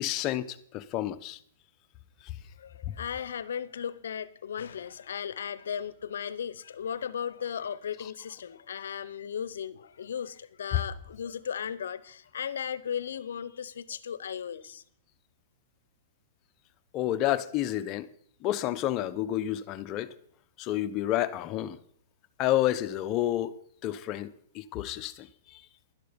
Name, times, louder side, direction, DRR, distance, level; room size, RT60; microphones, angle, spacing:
voice 1, 0.0-1.4 2.8-2.9 10.7-10.8 16.9-18.1 18.4-20.1 20.6-21.8 22.4-23.5 23.8-25.6, left 13 dB, 35° left, 0.9 m, -30 dB
voice 2, 2.6-14.8, left 8 dB, 80° left, 0.8 m, -36 dB
12.0 x 11.5 x 5.2 m
hypercardioid pair, 130°, 0 cm